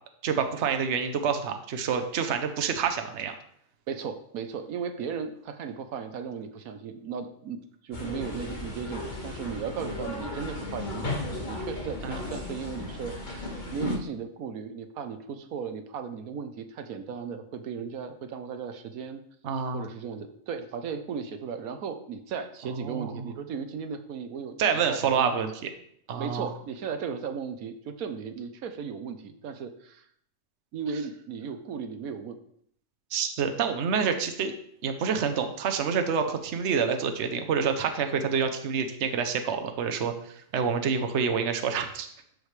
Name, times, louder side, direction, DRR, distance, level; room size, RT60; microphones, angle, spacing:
voice 1, 0.2-3.3 12.0-12.2 19.4-19.8 22.8-23.3 24.6-25.7 26.1-26.5 33.1-34.5 34.8-42.1, right 6 dB, 60° right, 6 dB, 1.1 m, -27 dB
voice 2, 3.9-19.2 19.7-24.6 24.9-25.3 26.2-30.1 30.7-32.4, right 6 dB, 90° right, 8 dB, 1.3 m, -36 dB
sound 1, 7.9-14.0, left 2 dB, 35° left, 1.6 m, -35 dB
12.5 x 5.1 x 3.3 m, 0.67 s
omnidirectional pair, 1.4 m